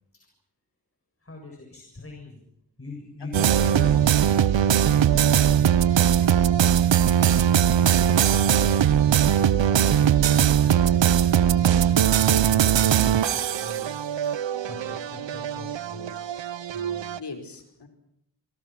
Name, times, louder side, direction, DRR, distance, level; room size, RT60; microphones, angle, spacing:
voice 1, 1.2-2.5 2.8-4.5 5.1-6.0 7.1-7.3 8.7-9.2 9.9-14.1 14.6-17.2, left 2 dB, 30° left, 1 dB, 7.6 m, -43 dB
sound 1, 3.3-17.2, right 9 dB, 75° right, 1.0 m, -20 dB
voice 2, 3.4-3.8 6.2-7.2 17.2-17.9, left 4 dB, 65° left, 5 dB, 5.1 m, -42 dB
27.5 x 24.0 x 6.1 m, 0.76 s
cardioid pair, 55°, 45 cm